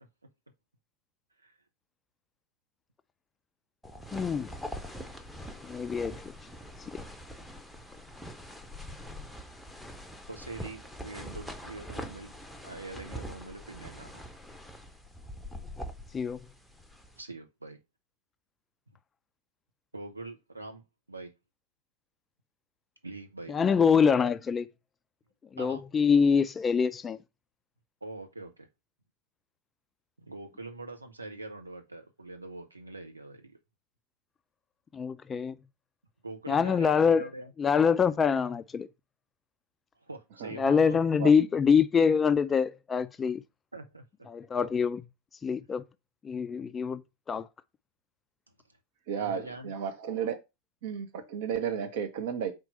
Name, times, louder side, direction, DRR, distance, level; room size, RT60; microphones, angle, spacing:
sound 1, 3.8-17.2, equal, ahead, 0.8 m, -43 dB
voice 1, 4.1-4.5 5.6-6.2 16.1-16.4 23.5-24.7 25.5-27.2 34.9-35.6 36.5-37.2 37.6-38.9 40.6-43.4 44.3-45.0 45.4-45.8 46.2-47.5, left 6 dB, 20° left, 0.4 m, -25 dB
voice 2, 10.3-12.3 12.6-14.2 17.2-17.8 19.9-21.3 23.0-23.6 25.6-25.8 26.1-26.2 28.0-28.7 30.3-33.6 36.2-37.5 40.0-41.0 43.7-44.3 49.1-49.7, right 2 dB, 80° right, 0.9 m, -43 dB
voice 3, 49.1-50.4 50.8-52.5, right 8 dB, 50° right, 1.1 m, -33 dB
4.6 x 3.8 x 5.4 m
figure-of-eight pair, 90°, 0 cm